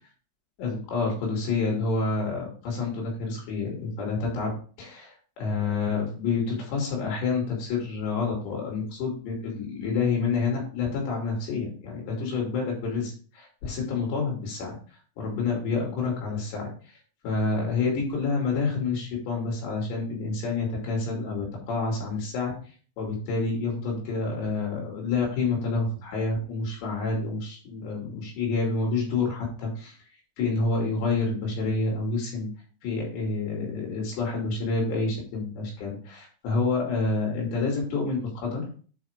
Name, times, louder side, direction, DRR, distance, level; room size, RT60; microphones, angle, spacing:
voice 1, 0.6-14.8 15.2-16.7 17.2-22.5 23.0-29.9 30.4-32.5 32.8-38.6, left 4 dB, 60° left, -2 dB, 4.6 m, -28 dB
8.9 x 5.1 x 3.6 m, 0.41 s
omnidirectional pair, 5.9 m